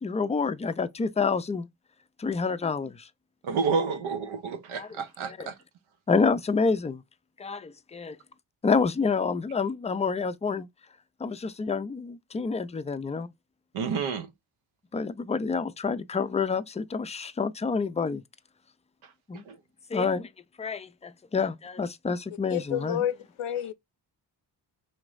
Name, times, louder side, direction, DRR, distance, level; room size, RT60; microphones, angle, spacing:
voice 1, 0.0-1.7 2.2-3.1 4.7-4.9 5.2-5.5 6.1-7.0 7.4-8.2 8.6-10.7 11.2-13.3 14.9-18.2 19.3-19.4 19.9-20.3 20.6-23.0, left 5 dB, 15° left, 0.4 m, -28 dB
voice 2, 3.4-5.6 13.7-14.3 19.5-19.6, right 5 dB, 80° right, 0.8 m, -29 dB
voice 3, 22.5-23.7, left 10 dB, 80° left, 0.6 m, -30 dB
4.4 x 3.0 x 2.5 m
cardioid pair, 50°, 48 cm